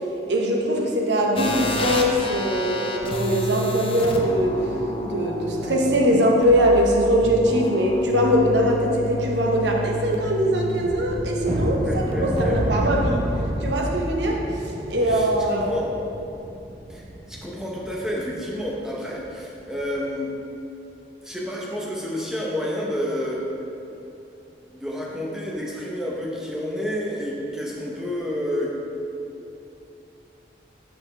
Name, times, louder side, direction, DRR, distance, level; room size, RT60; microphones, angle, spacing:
voice 1, 0.3-4.6 5.0-13.2 13.6-15.7, equal, 80° right, 0 dB, 0.9 m, -21 dB
sound 1, 1.4-14.3, left 1 dB, 30° left, 0.5 m, -31 dB
sound 2, 11.4-18.2 18.5-18.7 19.1-19.3 19.7-19.9, right 1 dB, 35° right, 0.5 m, -30 dB
voice 2, 11.8-12.8 15.0-15.9 16.9-20.3 21.2-23.4 24.7-28.7, left 1 dB, 5° right, -4 dB, 0.8 m, -30 dB
6.5 x 6.1 x 3.3 m, 2.8 s
head